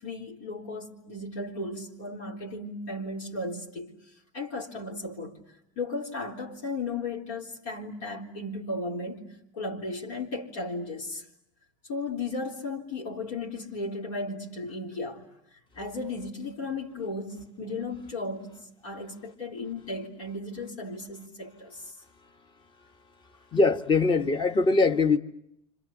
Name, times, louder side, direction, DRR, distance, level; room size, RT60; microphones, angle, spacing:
voice 1, 0.0-3.9 4.3-5.4 5.8-9.2 9.5-11.2 11.9-15.2 15.8-21.8, left 2 dB, 85° left, 3.8 m, -35 dB
voice 2, 23.5-25.2, left 3 dB, 30° left, 1.3 m, -22 dB
29.5 x 26.5 x 7.3 m
supercardioid pair, 110°, 16 cm